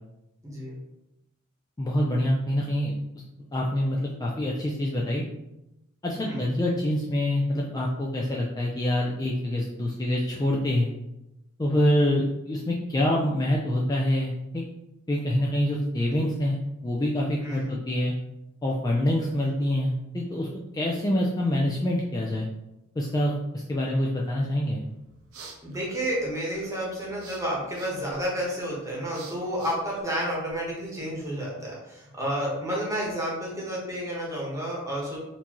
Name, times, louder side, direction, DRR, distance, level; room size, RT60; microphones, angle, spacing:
voice 1, 0.4-0.8 6.1-6.6 17.4-17.7 25.6-35.2, equal, 15° right, -4 dB, 1.1 m, -31 dB
voice 2, 1.8-2.9 3.5-5.2 6.0-10.9 11.6-14.6 15.1-16.6 16.8-18.1 18.6-20.5 20.7-22.5 23.0-24.8, left 1 dB, 20° left, -3 dB, 0.3 m, -26 dB
sound 1, 24.8-30.7, right 2 dB, 80° right, 0.7 m, -47 dB
4.3 x 2.7 x 2.9 m, 0.91 s
head